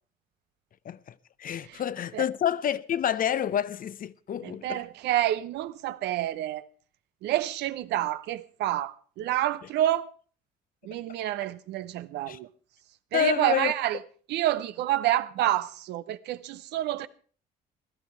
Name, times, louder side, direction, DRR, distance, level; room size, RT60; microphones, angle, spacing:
voice 1, 1.4-4.8 12.3-12.4 13.1-13.7, left 9 dB, 50° left, 0.7 m, -28 dB
voice 2, 4.4-6.7 7.2-10.1 10.8-12.5 13.1-14.0 14.3-17.1, right 13 dB, 75° right, 0.8 m, -28 dB
16.5 x 12.5 x 4.6 m
hypercardioid pair, 60°, 18 cm